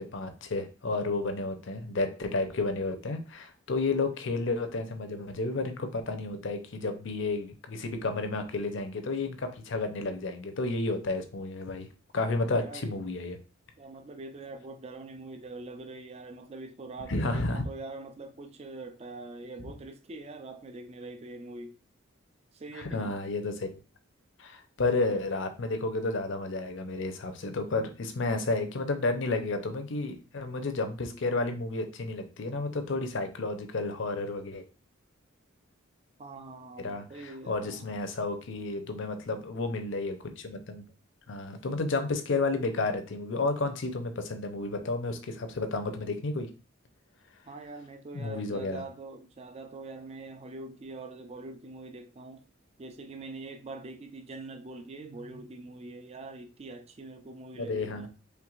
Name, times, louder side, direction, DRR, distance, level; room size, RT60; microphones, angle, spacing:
voice 1, 0.0-11.9 12.1-13.4 17.1-17.6 22.8-23.7 24.4-34.6 36.8-40.8 41.3-46.5 48.1-48.8 57.6-58.1, left 3 dB, 65° left, 0.6 m, -31 dB
voice 2, 12.6-12.9 13.8-21.8 22.5-23.1 36.2-38.0 47.5-52.4 52.8-58.1, right 2 dB, 30° right, 0.4 m, -43 dB
4.5 x 3.3 x 2.4 m
head